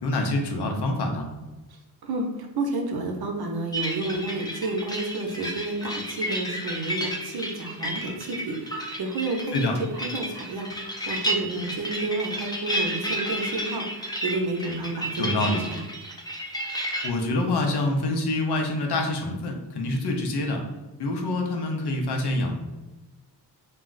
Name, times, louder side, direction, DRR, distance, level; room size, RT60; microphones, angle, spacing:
voice 1, 0.0-1.3 9.5-9.8 15.2-15.6 17.0-20.6 21.0-22.6, left 2 dB, 70° left, 2 dB, 0.7 m, -26 dB
voice 2, 2.0-9.5 9.9-15.2 15.7-15.8, right 2 dB, 65° right, 2 dB, 0.6 m, -30 dB
sound 1, 3.7-17.1, equal, 10° left, 0.4 m, -32 dB
2.3 x 2.0 x 3.8 m, 1.1 s
cardioid pair, 70°, 41 cm